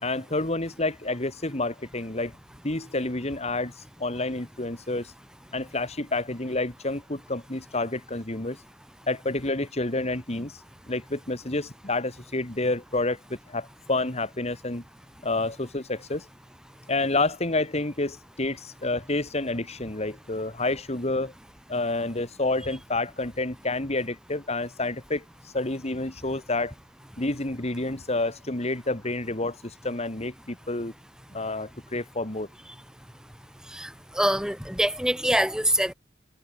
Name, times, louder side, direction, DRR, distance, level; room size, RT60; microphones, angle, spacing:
voice 1, 0.0-2.4 2.6-5.1 5.5-8.6 9.1-10.6 10.9-14.8 15.2-16.3 16.9-21.3 21.7-25.2 25.5-26.7 27.2-30.9 31.3-32.5, left 2 dB, 35° left, 2.6 m, -29 dB
voice 2, 34.2-35.9, right 1 dB, 5° right, 4.8 m, -24 dB
head